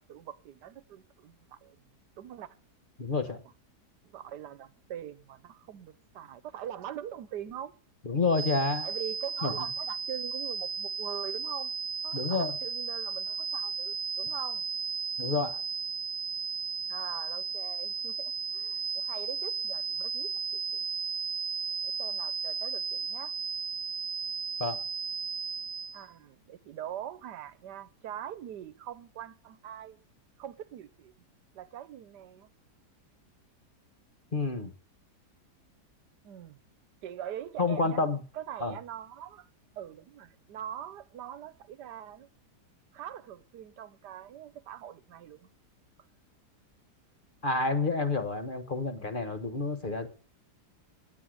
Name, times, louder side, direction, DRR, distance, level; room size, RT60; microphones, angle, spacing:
voice 1, 0.0-1.8 2.2-2.5 3.3-3.4 4.1-7.7 8.8-11.7 12.0-14.6 16.9-20.9 21.8-23.3 25.9-30.0 30.4-31.1 31.5-32.5 36.2-36.6 37.0-38.0 38.3-39.5 39.7-42.3 42.9-45.5 49.0-49.1, right 10 dB, 85° right, 1.4 m, -43 dB
voice 2, 3.0-3.4 8.0-8.9 9.4-9.7 12.1-12.6 15.2-15.6 24.6-24.8 34.3-34.7 37.6-38.2 38.6-38.8 47.4-50.1, left 3 dB, 35° left, 1.3 m, -29 dB
sound 1, 8.3-26.0, right 5 dB, 50° right, 0.9 m, -34 dB
9.4 x 8.8 x 7.8 m
omnidirectional pair, 1.8 m